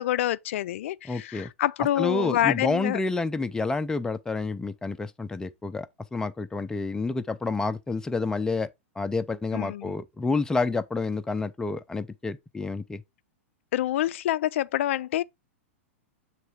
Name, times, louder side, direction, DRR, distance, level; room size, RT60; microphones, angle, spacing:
voice 1, 0.0-3.0 9.5-10.0 13.7-15.2, left 13 dB, 65° left, 0.4 m, -27 dB
voice 2, 1.1-1.5 2.0-8.7 9.0-13.0, left 3 dB, 10° left, 0.6 m, -29 dB
7.1 x 3.3 x 4.7 m
hypercardioid pair, 115°, 7 cm